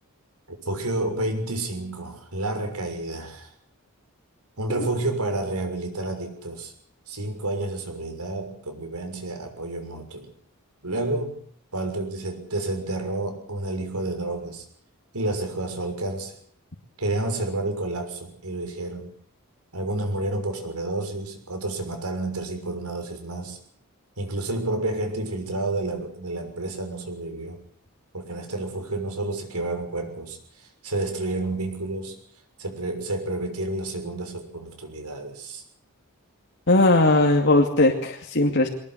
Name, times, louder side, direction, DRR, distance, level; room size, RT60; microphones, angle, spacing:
voice 1, 0.7-3.5 4.6-6.7 7.1-10.3 10.8-11.4 11.7-14.6 15.1-16.3 17.0-19.1 19.7-23.6 24.2-27.6 28.1-30.4 30.8-32.2 32.6-35.6, right 2 dB, 90° right, 4 dB, 6.5 m, -30 dB
voice 2, 36.7-38.7, left 2 dB, 55° left, 0 dB, 2.5 m, -19 dB
23.5 x 19.5 x 8.2 m, 0.62 s
head